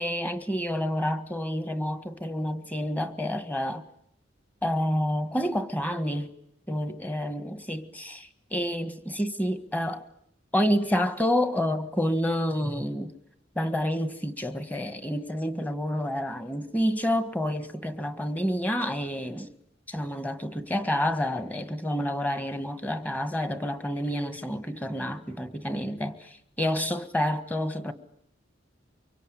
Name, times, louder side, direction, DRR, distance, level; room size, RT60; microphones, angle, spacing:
voice 1, 0.0-3.9 4.6-6.3 6.7-10.0 10.5-13.1 13.5-19.5 19.9-27.9, equal, 10° left, 1.6 m, -29 dB
24.5 x 23.5 x 9.9 m
head